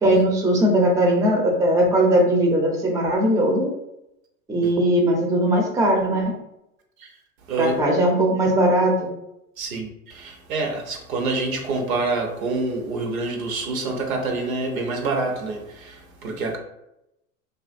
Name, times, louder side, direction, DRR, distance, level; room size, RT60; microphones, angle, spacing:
voice 1, 0.0-3.7 4.5-6.3 7.6-8.9, right 1 dB, 10° right, 0.4 m, -19 dB
voice 2, 7.5-7.8 9.6-16.6, right 3 dB, 80° right, 0.8 m, -27 dB
2.7 x 2.4 x 2.5 m
hypercardioid pair, 95°, 41 cm